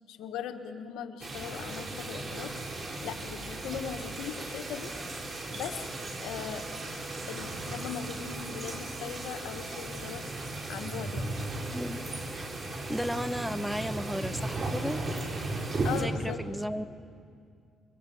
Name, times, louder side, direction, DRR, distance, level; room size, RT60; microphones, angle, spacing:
voice 1, 0.1-2.5 3.0-4.9 5.5-5.8 6.2-6.7 7.3-10.2 10.7-11.4 15.8-16.4, left 8 dB, 90° left, 8 dB, 1.4 m, -39 dB
sound 1, 1.2-16.0, right 2 dB, 40° right, 4.3 m, -36 dB
voice 2, 12.9-15.0 16.0-16.8, equal, ahead, 12 dB, 1.0 m, -34 dB
25.5 x 22.5 x 8.6 m, 2.2 s
cardioid pair, 90°, 0 cm